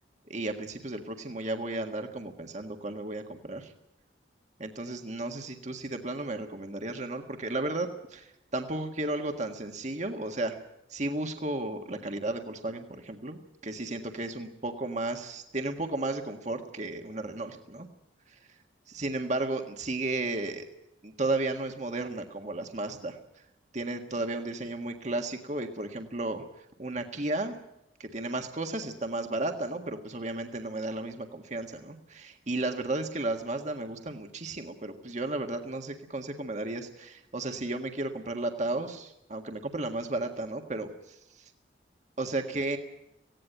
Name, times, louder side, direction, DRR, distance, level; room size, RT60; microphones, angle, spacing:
voice 1, 0.3-3.7 4.6-10.6 10.9-17.9 18.3-18.4 18.9-20.7 21.0-23.2 23.7-27.6 28.0-41.5 42.2-42.8, right 2 dB, 40° right, 5 dB, 1.7 m, -34 dB
18.5 x 16.5 x 9.2 m, 0.83 s
head